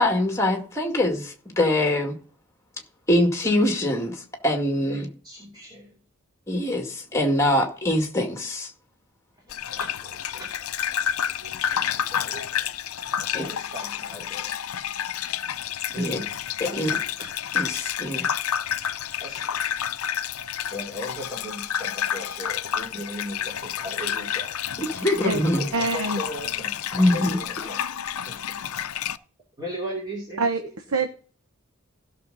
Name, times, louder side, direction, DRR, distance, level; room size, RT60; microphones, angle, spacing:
voice 1, 0.0-2.2 3.1-5.1 6.5-8.7 13.3-13.5 16.0-16.2 16.6-16.9 17.5-18.3 24.8-25.7 26.9-27.4, left 1 dB, 15° left, 2.1 m, -23 dB
voice 2, 4.9-6.0 9.4-12.9 13.3-14.5 15.9-16.3 16.6-17.2 19.2-19.6 20.7-24.5 25.5-28.0 28.3-29.0 29.6-30.4, equal, 20° right, 2.7 m, -38 dB
Gurgling / Bathtub (filling or washing), 9.5-29.2, left 9 dB, 80° left, 0.6 m, -30 dB
voice 3, 25.7-26.2 30.4-30.6 30.9-31.1, right 3 dB, 75° right, 1.0 m, -24 dB
16.0 x 6.5 x 4.0 m
head